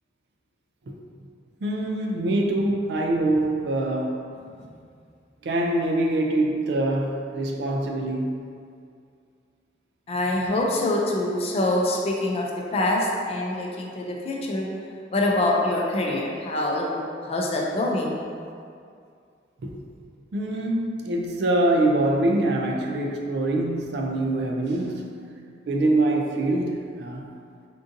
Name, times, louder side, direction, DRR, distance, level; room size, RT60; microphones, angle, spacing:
voice 1, 1.6-4.3 5.4-8.4 19.6-19.8 20.3-25.1 25.7-27.3, right 1 dB, 60° right, 1 dB, 0.3 m, -24 dB
voice 2, 10.1-12.5 12.7-14.7 15.1-18.2, left 1 dB, 35° left, -1 dB, 0.3 m, -25 dB
3.7 x 2.6 x 2.5 m, 2.3 s
head